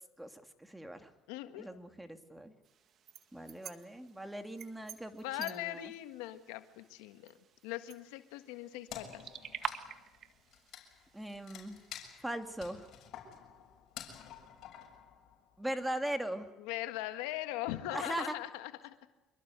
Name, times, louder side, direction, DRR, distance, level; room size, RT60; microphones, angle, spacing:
voice 1, 0.2-1.1 1.6-2.5 3.3-5.8 11.1-11.8 12.2-12.9 15.6-16.5 17.9-18.3, right 1 dB, 5° right, 6 dB, 2.7 m, -40 dB
voice 2, 1.3-1.7 5.2-7.4 7.6-9.2 16.6-18.9, left 15 dB, 85° left, 9 dB, 1.6 m, -40 dB
sound 1, 2.6-12.3, right 8 dB, 50° right, 1.9 m, -48 dB
Wood, 8.9-15.6, left 9 dB, 60° left, 6.8 m, -50 dB
26.0 x 23.0 x 8.2 m, 1.1 s
supercardioid pair, 85°, 0 cm